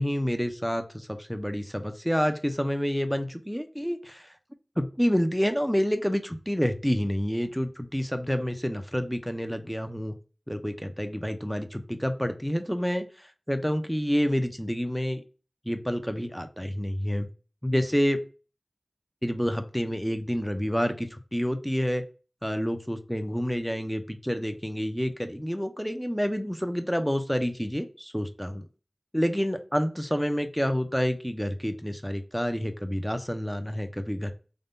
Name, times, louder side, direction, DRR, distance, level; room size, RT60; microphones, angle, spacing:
voice 1, 0.0-4.3 4.8-10.1 10.5-13.0 13.5-15.2 15.7-17.3 17.6-18.2 19.2-22.0 22.4-28.6 29.1-34.3, equal, ahead, 7 dB, 0.4 m, -28 dB
3.4 x 2.1 x 2.5 m, 0.35 s
wide cardioid pair, 55°, 0 cm